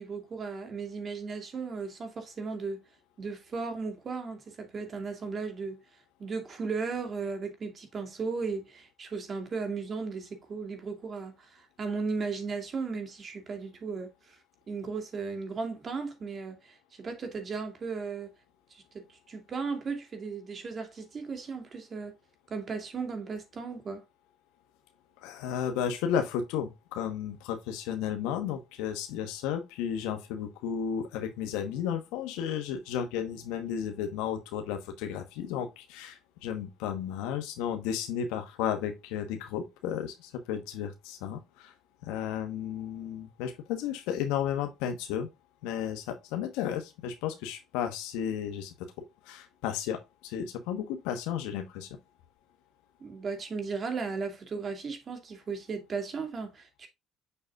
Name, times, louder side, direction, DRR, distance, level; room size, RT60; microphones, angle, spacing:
voice 1, 0.0-2.8 3.2-5.8 6.2-14.4 14.7-18.3 18.7-22.1 22.5-24.0 53.0-56.9, right 4 dB, 40° right, 2.6 m, -36 dB
voice 2, 25.2-41.7 42.0-45.3 45.6-52.0, left 8 dB, 90° left, 1.1 m, -33 dB
6.8 x 6.6 x 2.4 m
supercardioid pair, 90°, 0 cm